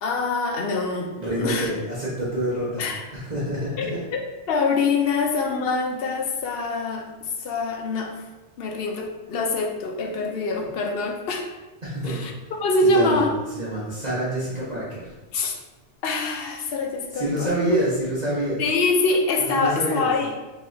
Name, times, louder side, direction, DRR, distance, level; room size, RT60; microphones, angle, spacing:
voice 1, 0.0-1.1 1.4-1.7 2.8-3.0 3.8-4.2 4.5-8.3 8.6-11.5 12.0-12.3 12.6-13.3 15.3-15.6 16.0-17.5 18.6-20.3, left 3 dB, 60° left, 3 dB, 0.7 m, -24 dB
voice 2, 1.2-4.1 10.6-10.7 11.8-12.2 12.8-15.1 17.1-18.7 19.3-20.1, right 1 dB, 40° right, -8 dB, 1.0 m, -27 dB
5.4 x 3.0 x 2.6 m, 1.2 s
omnidirectional pair, 1.2 m